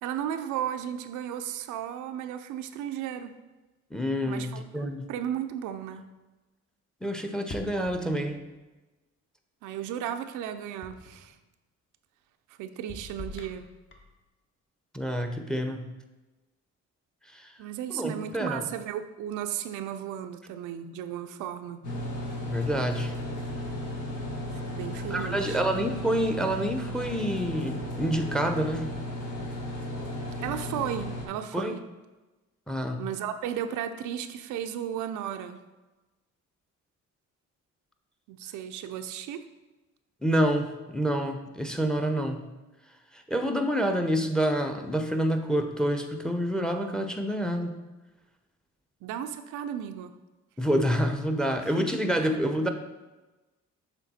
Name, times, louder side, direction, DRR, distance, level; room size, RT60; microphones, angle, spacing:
voice 1, 0.0-3.4 4.3-6.1 9.6-11.3 12.6-13.7 17.6-21.8 24.5-25.6 30.4-31.8 33.0-35.6 38.3-39.5 49.0-50.1 51.6-51.9 52.2-52.3, right 10 dB, 90° right, 8 dB, 0.5 m, -35 dB
voice 2, 3.9-5.0 7.0-8.4 14.9-15.8 17.3-17.5 17.9-18.6 22.4-23.1 25.1-28.9 31.5-31.7 32.7-33.0 40.2-42.4 43.1-47.7 50.6-52.7, equal, ahead, 5 dB, 0.6 m, -28 dB
sound 1, 7.5-8.6 10.8-11.4 12.9-14.2, left 3 dB, 40° left, 1.0 m, -44 dB
sound 2, 21.8-31.3, left 1 dB, 85° left, 1.5 m, -35 dB
7.1 x 3.6 x 4.2 m, 1.1 s
cardioid pair, 90°, 30 cm